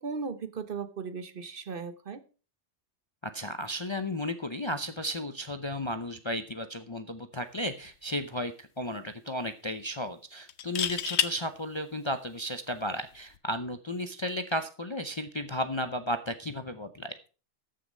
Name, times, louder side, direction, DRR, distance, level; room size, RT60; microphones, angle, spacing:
voice 1, 0.0-2.2, right 5 dB, 50° right, 1.0 m, -37 dB
voice 2, 3.2-17.2, left 1 dB, 30° left, 0.6 m, -34 dB
sound 1, 7.7-7.9 8.2-8.3 10.5-11.3 13.1-13.4, left 9 dB, 70° left, 1.0 m, -29 dB
13.5 x 6.4 x 5.3 m
omnidirectional pair, 1.2 m